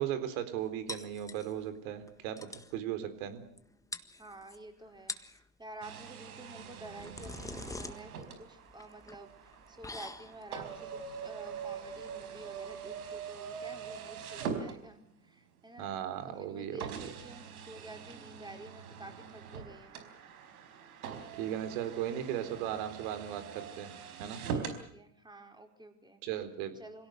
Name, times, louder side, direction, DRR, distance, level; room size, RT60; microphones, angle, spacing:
voice 1, 0.0-3.4 15.8-17.1 21.3-23.9 24.2-24.4 26.2-26.7, right 10 dB, 70° right, 10 dB, 4.1 m, -37 dB
sound 1, 0.9-1.8 2.1-2.2 2.4-2.7 3.6-3.7 3.9-4.6 5.0-5.4 6.6-13.2, left 2 dB, 10° left, 1.6 m, -45 dB
voice 2, 4.2-15.9 16.3-20.0 24.5-26.2 26.8-27.1, right 1 dB, 10° right, 5 dB, 4.8 m, -50 dB
sound 2, 5.8-15.3 16.0-16.1 16.8-24.8, right 6 dB, 85° right, 4.7 m, -43 dB
26.0 x 17.5 x 7.9 m, 0.67 s
supercardioid pair, 105°, 43 cm